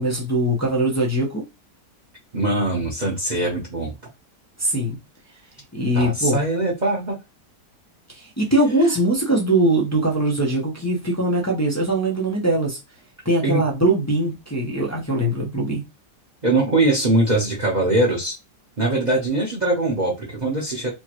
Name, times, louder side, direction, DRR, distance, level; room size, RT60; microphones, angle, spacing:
voice 1, 0.0-1.4 4.6-5.0 5.7-6.4 8.1-12.8 13.2-15.8, right 1 dB, 20° left, 0.4 m, -21 dB
voice 2, 2.3-3.9 5.9-7.2 13.4-13.6 16.4-18.3 18.8-20.9, right 2 dB, 35° right, 0.8 m, -21 dB
4.5 x 2.2 x 3.0 m
omnidirectional pair, 1.8 m